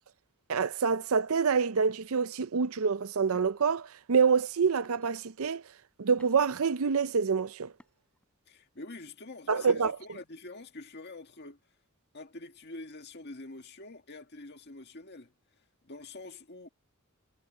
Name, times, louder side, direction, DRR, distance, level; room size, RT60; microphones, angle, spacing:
voice 1, 0.5-5.6 6.0-7.7 9.5-9.9, right 5 dB, 70° right, 0.6 m, -26 dB
sound 1, 2.5-2.7 3.3-3.7 4.4-4.5 4.8-5.3 5.8-6.6 7.7-8.3, equal, 5° left, 6.2 m, -61 dB
voice 2, 8.5-11.6 12.1-15.3 15.8-16.7, left 2 dB, 50° left, 1.9 m, -45 dB
head